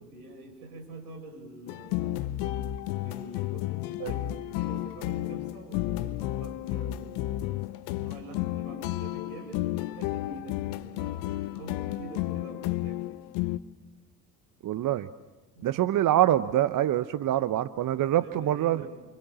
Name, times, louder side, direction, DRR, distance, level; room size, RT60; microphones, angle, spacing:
voice 1, 0.0-2.2 3.0-7.5 8.0-13.0 15.5-15.9 17.9-18.9, right 2 dB, 75° right, 5 dB, 7.3 m, -46 dB
sound 1, 1.7-13.6, left 15 dB, 60° left, 1.1 m, -32 dB
voice 2, 14.6-15.1 15.6-18.9, right 12 dB, 45° right, 13 dB, 1.0 m, -25 dB
29.0 x 26.0 x 7.0 m, 1.2 s
hypercardioid pair, 65°, 45 cm